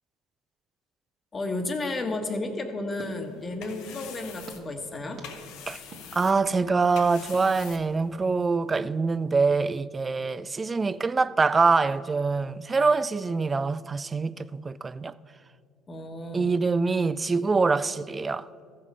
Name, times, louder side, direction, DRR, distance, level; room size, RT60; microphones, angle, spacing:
voice 1, 1.3-5.2 15.9-16.5, left 2 dB, 30° left, 1.2 m, -32 dB
sound 1, 2.2-3.9 4.5-4.6 5.2-5.3 5.9-6.0 6.6-6.8 7.3-7.5, right 3 dB, 45° right, 1.6 m, -47 dB
sound 2, 3.2-8.3, left 7 dB, 70° left, 0.9 m, -46 dB
voice 2, 6.1-15.1 16.3-18.5, right 4 dB, 25° right, 0.3 m, -24 dB
14.5 x 5.2 x 5.4 m
supercardioid pair, 85°, 0 cm